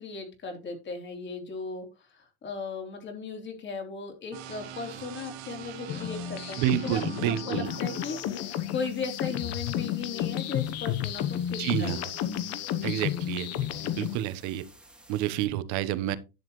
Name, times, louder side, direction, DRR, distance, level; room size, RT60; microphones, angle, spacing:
voice 1, 0.0-1.9 2.1-12.1, left 4 dB, 35° left, 3.4 m, -37 dB
sound 1, 4.3-8.3, right 9 dB, 75° right, 2.0 m, -42 dB
sound 2, 5.9-14.2, left 11 dB, 50° left, 1.1 m, -32 dB
voice 2, 6.6-7.7 11.6-12.0 12.8-13.5 14.0-14.6 15.1-16.2, right 13 dB, 60° right, 1.1 m, -29 dB
sound 3, 7.6-15.4, right 1 dB, 5° right, 2.0 m, -55 dB
10.5 x 7.2 x 3.2 m
supercardioid pair, 115°, 33 cm